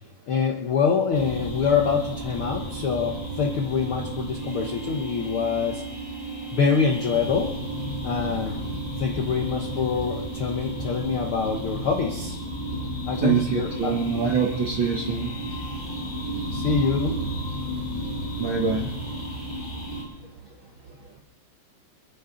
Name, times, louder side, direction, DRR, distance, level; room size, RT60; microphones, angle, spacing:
voice 1, 0.3-6.1 6.5-7.5 8.0-8.7 9.0-12.4 13.0-13.9 16.5-17.2, left 5 dB, 85° left, 2 dB, 1.1 m, -25 dB
sound 1, 1.1-20.0, right 1 dB, 20° left, 3.7 m, -33 dB
voice 2, 13.2-15.3 18.4-18.9, right 5 dB, 65° right, 0 dB, 1.2 m, -24 dB
27.5 x 10.0 x 3.9 m, 0.92 s
omnidirectional pair, 4.0 m